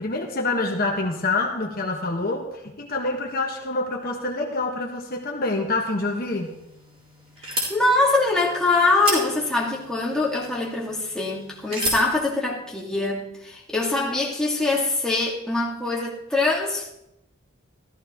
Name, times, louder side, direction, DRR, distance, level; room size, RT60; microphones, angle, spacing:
voice 1, 0.0-6.5, left 2 dB, 45° left, 1 dB, 1.4 m, -26 dB
sound 1, 6.3-12.1, right 1 dB, 30° right, 4.0 m, -34 dB
voice 2, 7.4-16.9, left 2 dB, 5° left, -4 dB, 2.0 m, -23 dB
14.5 x 13.5 x 3.0 m, 0.83 s
head